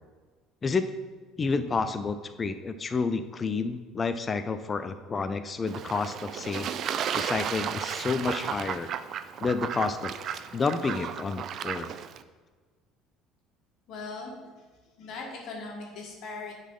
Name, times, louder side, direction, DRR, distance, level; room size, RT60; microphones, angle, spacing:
voice 1, 1.4-6.7 7.1-8.9 9.4-10.1 10.5-11.9, left 4 dB, 30° left, 11 dB, 0.5 m, -30 dB
Fowl / Bird / Water, 5.7-12.2, right 8 dB, 50° right, 0.3 m, -34 dB
voice 2, 13.9-14.3 15.0-16.5, left 3 dB, 55° left, -1 dB, 1.7 m, -39 dB
10.0 x 4.1 x 3.8 m, 1.4 s
hypercardioid pair, 60°, 0 cm